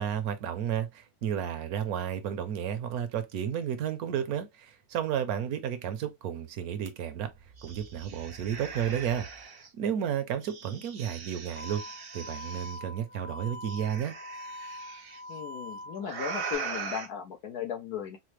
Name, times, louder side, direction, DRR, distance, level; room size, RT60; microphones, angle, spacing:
voice 1, 0.0-7.3 7.6-9.5 9.7-11.8 12.1-14.1, right 9 dB, 75° right, 1.1 m, -32 dB
sound 1, 6.9-7.0 7.3-9.7 10.4-12.8 13.7-15.2 16.0-17.1, right 5 dB, 50° right, 0.7 m, -41 dB
sound 2, 11.6-16.6, left 1 dB, 55° left, 1.1 m, -43 dB
voice 2, 15.3-18.2, left 8 dB, 80° left, 1.3 m, -36 dB
4.2 x 2.1 x 3.1 m
omnidirectional pair, 1.6 m